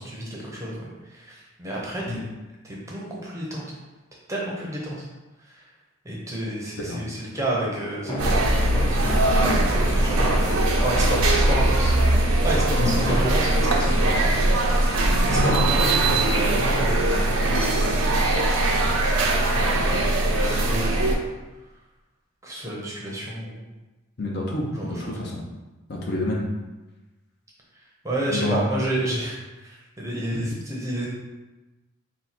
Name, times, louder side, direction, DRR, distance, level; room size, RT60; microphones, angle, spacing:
voice 1, 0.0-2.2 2.6-3.6 4.3-5.1 5.5-5.6 6.0-9.3 9.6-10.3 10.8-14.5 15.2-17.6 19.4-20.1 20.4-21.1 22.4-23.6 24.7-25.2 28.0-31.1, right 1 dB, 15° right, -4 dB, 0.7 m, -31 dB
sound 1, 7.4-17.7, equal, 20° left, 0.9 m, -35 dB
sound 2, 8.2-21.2, right 1 dB, 85° right, 0.6 m, -21 dB
voice 2, 24.2-25.4 25.9-26.4 28.3-28.6 30.3-30.6, left 2 dB, 50° left, -1 dB, 0.6 m, -28 dB
4.2 x 2.2 x 4.2 m, 1.1 s
head